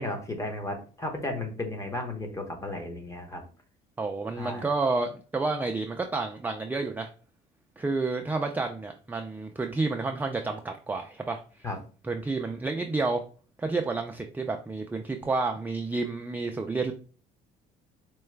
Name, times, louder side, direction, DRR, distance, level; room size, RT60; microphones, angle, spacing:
voice 1, 0.0-3.4 4.4-4.7 11.6-11.8, left 2 dB, 20° left, 3 dB, 1.0 m, -34 dB
voice 2, 4.0-7.1 7.8-11.4 12.0-13.2 13.6-16.9, right 3 dB, 10° right, 4 dB, 0.3 m, -30 dB
4.5 x 2.2 x 3.2 m, 0.39 s
cardioid pair, 110°, 17 cm